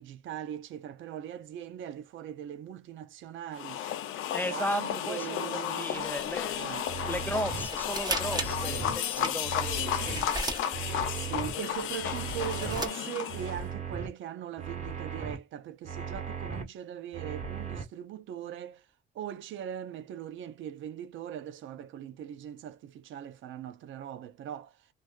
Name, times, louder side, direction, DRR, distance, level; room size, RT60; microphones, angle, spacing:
voice 1, 0.0-3.8 4.4-6.1 6.6-6.9 8.7-9.4 11.1-18.9 19.1-24.8, right 10 dB, 75° right, 0.6 m, -40 dB
sound 1, 3.5-13.6, left 10 dB, 85° left, 0.5 m, -33 dB
voice 2, 4.3-6.7 7.1-11.0 12.0-12.1, equal, 10° left, 0.4 m, -36 dB
sound 2, 5.9-6.4 6.6-6.7 7.0-7.1 7.3-8.7 9.1-11.1 11.7-12.9, right 2 dB, 20° right, 1.3 m, -36 dB
sound 3, 6.9-7.7 8.2-8.9 9.4-10.2 10.7-11.5 12.0-12.8 13.3-14.1 14.6-15.4 15.9-16.6 17.1-17.8, right 6 dB, 35° right, 1.5 m, -37 dB
2.6 x 2.3 x 2.3 m
cardioid pair, 90°, 20 cm